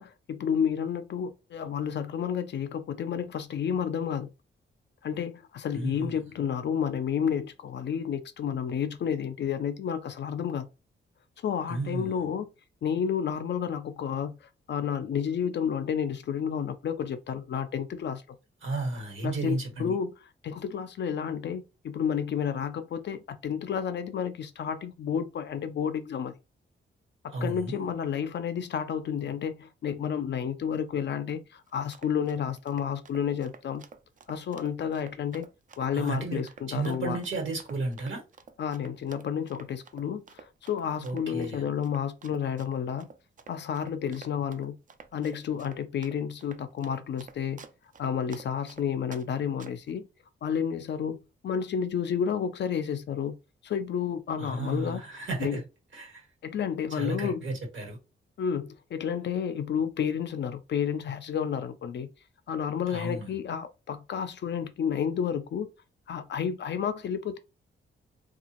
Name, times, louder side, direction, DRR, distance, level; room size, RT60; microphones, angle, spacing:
voice 1, 0.0-4.3 5.0-10.7 11.4-12.5 12.8-14.4 14.7-18.4 19.2-20.1 20.4-26.3 27.2-33.8 34.3-35.5 35.8-37.2 38.6-43.1 43.5-44.8 45.1-47.6 48.0-50.1 50.4-53.4 53.6-55.0 55.4-55.6 56.4-57.4 58.4-62.1 62.5-65.7 66.1-67.4, left 8 dB, 60° left, 0.4 m, -31 dB
voice 2, 5.7-6.3 11.7-12.2 18.6-20.0 27.3-27.8 35.9-36.4 36.7-38.2 41.0-41.6 54.4-55.6 55.9-56.3 56.9-58.0 62.9-63.3, right 2 dB, 70° right, 1.2 m, -33 dB
Run, 31.7-49.3 49.6-49.9, right 5 dB, 40° right, 0.4 m, -50 dB
2.8 x 2.3 x 2.9 m
wide cardioid pair, 120°, 21 cm